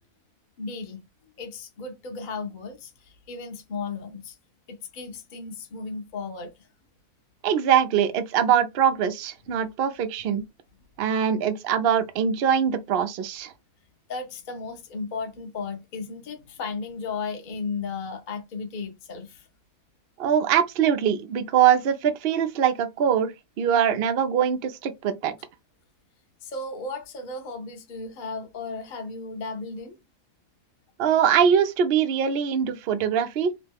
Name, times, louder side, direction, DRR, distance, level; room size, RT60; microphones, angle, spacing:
voice 1, 0.6-1.1 1.4-4.4 4.7-6.7 14.1-19.5 26.4-30.0, left 4 dB, 45° left, 0.6 m, -35 dB
voice 2, 7.4-10.4 11.0-13.5 20.2-25.4 31.0-33.5, right 8 dB, 80° right, 0.5 m, -22 dB
2.9 x 2.2 x 3.4 m
omnidirectional pair, 1.6 m